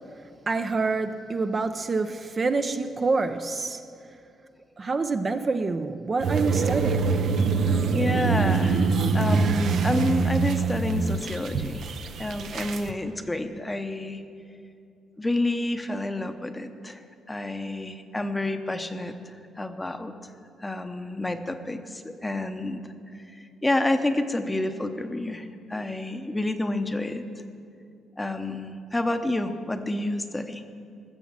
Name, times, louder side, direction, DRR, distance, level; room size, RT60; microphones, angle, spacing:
voice 1, 0.5-3.8 4.8-7.2, right 3 dB, 35° right, 0.6 m, -27 dB
sound 1, 6.2-12.9, right 4 dB, 65° right, 0.7 m, -24 dB
voice 2, 7.9-8.9 9.1-11.8 12.2-14.2 15.2-17.0 17.3-19.2 19.6-20.1 20.6-22.8 23.6-27.2 28.2-30.6, left 2 dB, 15° left, 0.8 m, -29 dB
14.5 x 7.1 x 7.3 m
cardioid pair, 90°, 0 cm